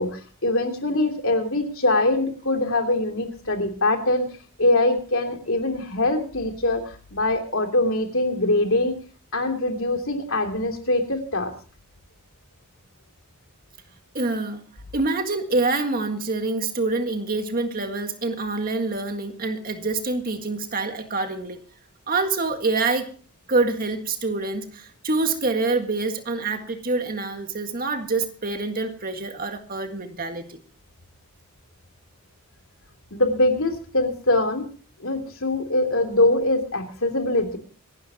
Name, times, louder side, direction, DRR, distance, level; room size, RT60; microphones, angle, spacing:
voice 1, 0.0-4.3 4.6-9.0 9.3-11.5 33.1-34.7 35.0-37.6, left 2 dB, 65° left, 3 dB, 3.2 m, -23 dB
voice 2, 14.1-14.6 14.9-21.6 22.1-23.1 23.5-30.6, right 3 dB, 40° right, 6 dB, 1.8 m, -26 dB
26.0 x 12.5 x 2.9 m, 0.40 s
head